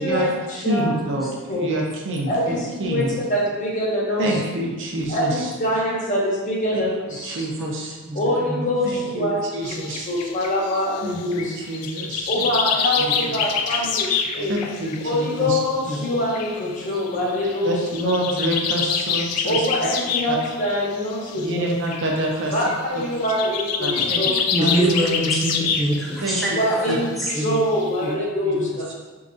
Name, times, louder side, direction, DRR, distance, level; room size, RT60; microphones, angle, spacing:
voice 1, 0.0-0.9 1.5-1.7 2.3-4.2 5.1-7.3 8.1-9.4 10.1-11.5 12.3-14.6 15.0-17.7 18.0-18.1 19.4-21.6 22.5-24.9 26.6-28.9, left 1 dB, 35° left, -3 dB, 0.8 m, -24 dB
voice 2, 0.6-3.2 4.2-5.5 6.7-6.8 7.2-8.0 9.1-10.1 11.0-12.5 13.0-13.3 13.7-13.8 14.5-15.6 17.6-19.6 20.3-20.4 21.3-22.5 22.9-23.0 23.8-24.2 24.6-24.7 26.2-26.4 26.9-27.0 27.4-27.5 28.0-28.1 28.4-28.8, right 1 dB, 55° right, -1 dB, 0.7 m, -27 dB
voice 3, 8.1-8.7 14.4-14.5 15.8-16.2 16.6-16.7 24.3-27.5 28.5-28.7, right 1 dB, ahead, -5 dB, 0.7 m, -26 dB
sound 1, 9.6-15.7 16.0-26.2 26.5-26.8 27.2-28.0, left 6 dB, 85° left, 0.4 m, -27 dB
4.7 x 3.2 x 2.7 m, 1.3 s
head